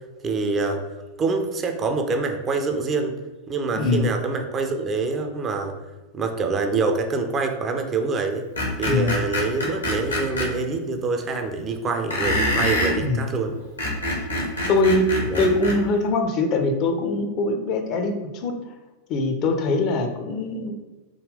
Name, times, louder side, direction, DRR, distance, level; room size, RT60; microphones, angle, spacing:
voice 1, 0.2-0.8 1.2-3.2 3.5-5.7 6.1-8.4 8.8-13.6 15.3-15.5, right 3 dB, 25° right, 5 dB, 0.4 m, -25 dB
voice 2, 3.7-4.1 8.8-9.1 13.0-13.3 14.7-15.1 15.4-18.6 19.1-20.7, left 2 dB, 40° left, 5 dB, 0.4 m, -22 dB
Screech, 8.6-10.5 12.1-13.0 13.6-15.8, left 1 dB, 80° left, 0.8 m, -25 dB
3.6 x 2.2 x 3.3 m, 1.1 s
figure-of-eight pair, 90°, 0 cm